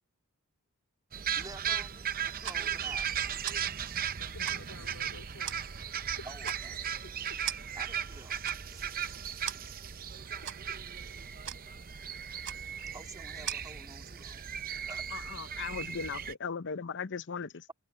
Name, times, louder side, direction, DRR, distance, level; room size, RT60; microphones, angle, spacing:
sound 1, 1.1-16.3, right 8 dB, 40° right, 0.7 m, -37 dB
voice 1, 1.3-3.1 6.2-6.8 7.7-8.4 8.7-8.8 12.9-14.5 14.8-15.1, right 3 dB, 15° right, 2.4 m, -49 dB
sound 2, 2.2-13.6, right 10 dB, 60° right, 5.0 m, -45 dB
voice 2, 4.2-5.7 5.9-6.5 7.0-7.4 10.4-10.7, left 3 dB, 75° left, 4.3 m, -52 dB
voice 3, 15.6-17.7, left 6 dB, 55° left, 0.7 m, -37 dB
head